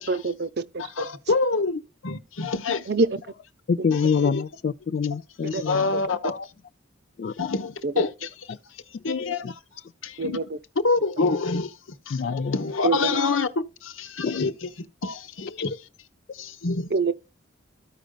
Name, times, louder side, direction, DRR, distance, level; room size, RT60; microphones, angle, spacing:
voice 1, 0.1-1.1 2.9-3.1 5.5-5.6 7.8-8.0 10.2-10.6 12.8-13.2 16.9-17.1, right 3 dB, 50° right, 0.6 m, -25 dB
voice 2, 0.8-2.9 3.9-4.4 5.5-6.3 7.4-8.3 9.0-9.6 10.0-10.4 10.8-11.8 12.1-14.7 15.0-15.8 16.3-16.9, left 3 dB, 80° left, 0.9 m, -27 dB
voice 3, 3.7-5.8 6.2-6.4 7.2-7.3 8.5-8.6 8.9-9.5 12.1-12.6 14.2-14.4, left 6 dB, 50° left, 0.3 m, -26 dB
14.5 x 5.0 x 2.2 m
head